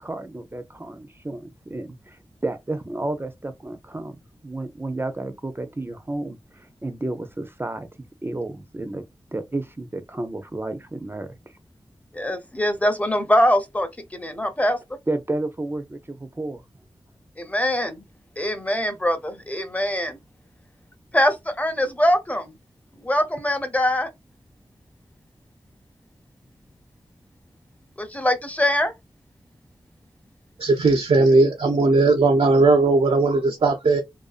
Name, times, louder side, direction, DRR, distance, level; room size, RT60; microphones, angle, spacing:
voice 1, 0.0-4.2 4.4-9.0 9.3-11.3 15.1-16.6, right 2 dB, 25° right, 0.5 m, -31 dB
voice 2, 12.1-14.8 17.4-18.0 18.4-20.2 21.1-22.6 23.0-24.1 28.0-28.9, left 1 dB, 15° left, 0.7 m, -23 dB
voice 3, 30.6-34.0, right 3 dB, 75° right, 0.5 m, -18 dB
2.5 x 2.3 x 2.4 m
wide cardioid pair, 60°, 10 cm